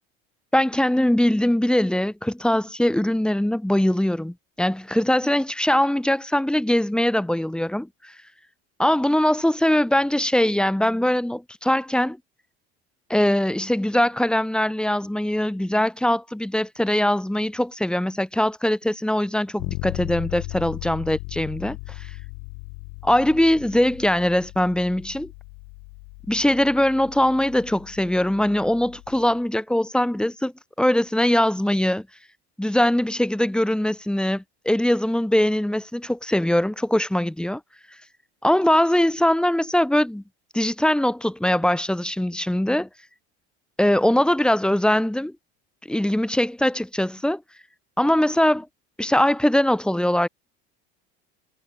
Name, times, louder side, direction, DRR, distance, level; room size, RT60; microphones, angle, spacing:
voice 1, 0.5-8.1 8.8-12.2 13.1-22.1 23.0-25.3 26.3-30.5 30.8-32.1 32.6-37.6 38.4-40.2 40.5-42.9 43.8-45.3 45.9-47.4 48.0-48.7 49.0-50.3, left 1 dB, ahead, 1.3 m, -21 dB
Bass guitar, 19.6-29.3, left 39 dB, 70° left, 2.4 m, -37 dB
supercardioid pair, 110°, 34 cm